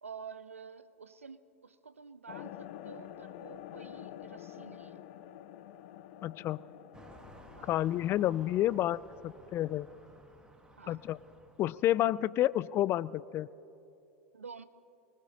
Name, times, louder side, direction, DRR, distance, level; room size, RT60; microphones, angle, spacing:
voice 1, 0.0-5.0 7.6-7.7 10.8-11.0 14.3-14.6, right 6 dB, 85° right, 13 dB, 0.6 m, -49 dB
sound 1, 2.3-10.2, left 12 dB, 55° left, 0.7 m, -49 dB
voice 2, 6.2-6.6 7.7-9.9 10.9-11.2 11.6-13.5, left 13 dB, 35° left, 20 dB, 0.3 m, -30 dB
sound 2, 6.9-11.8, right 1 dB, 10° right, 1.7 m, -55 dB
23.5 x 20.0 x 2.9 m, 2.8 s
figure-of-eight pair, 90°, 7 cm